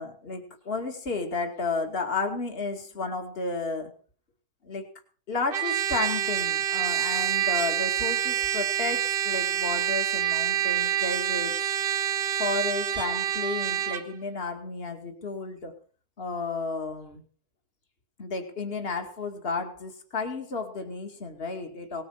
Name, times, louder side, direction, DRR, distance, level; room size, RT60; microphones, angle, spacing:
voice 1, 0.0-3.9 4.6-4.9 5.3-11.7 12.4-15.7 16.2-17.2 18.2-22.0, left 3 dB, 35° left, 4 dB, 2.6 m, -32 dB
Trumpet, 5.5-14.1, right 11 dB, 90° right, 2.1 m, -27 dB
19.5 x 9.4 x 5.8 m, 0.40 s
omnidirectional pair, 1.8 m